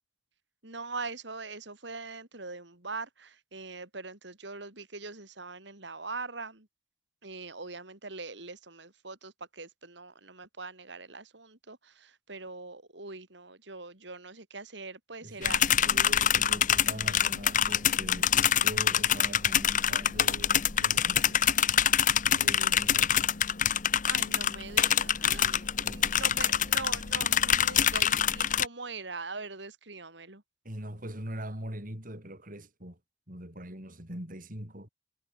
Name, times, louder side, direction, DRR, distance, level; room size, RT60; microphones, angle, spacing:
voice 1, 0.6-6.7 7.2-15.8 24.1-30.4, right 3 dB, 65° right, 3.8 m, -42 dB
voice 2, 15.2-21.5 22.3-23.3 25.8-26.3 30.6-33.0 33.3-34.9, right 1 dB, 45° right, 6.5 m, -42 dB
sound 1, 15.4-28.7, left 9 dB, 45° left, 1.0 m, -25 dB
head